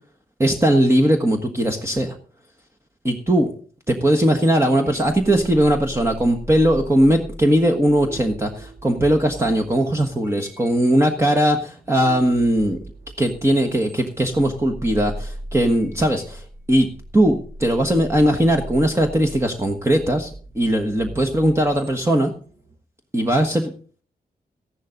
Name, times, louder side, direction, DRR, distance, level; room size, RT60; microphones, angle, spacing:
voice 1, 0.4-2.2 3.0-3.5 3.9-12.8 13.2-16.9 17.1-22.3 23.1-23.7, right 1 dB, 15° right, 3 dB, 1.4 m, -19 dB
sound 1, 4.4-22.8, right 1 dB, 50° right, 7.4 m, -39 dB
14.0 x 11.5 x 3.9 m, 0.41 s
wide cardioid pair, 155°, 16 cm